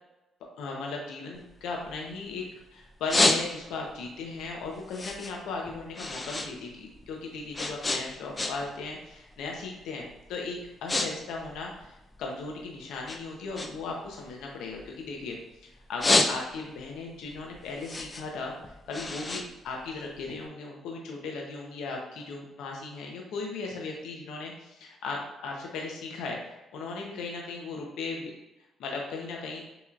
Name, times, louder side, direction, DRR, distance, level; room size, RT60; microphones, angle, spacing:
voice 1, 0.6-2.4 2.7-18.5 18.9-28.3 28.8-29.6, left 3 dB, 85° left, 0 dB, 0.8 m, -37 dB
sound 1, 1.3-2.5 2.8-3.9 4.3-6.5 6.8-8.8 9.1-9.5 10.1-10.2 10.5-11.1 11.3-12.6 13.0-15.4 15.8-16.8 17.2-20.3, left 2 dB, 25° left, 0.5 m, -29 dB
6.9 x 3.0 x 2.4 m, 0.99 s
cardioid pair, 90°, 0 cm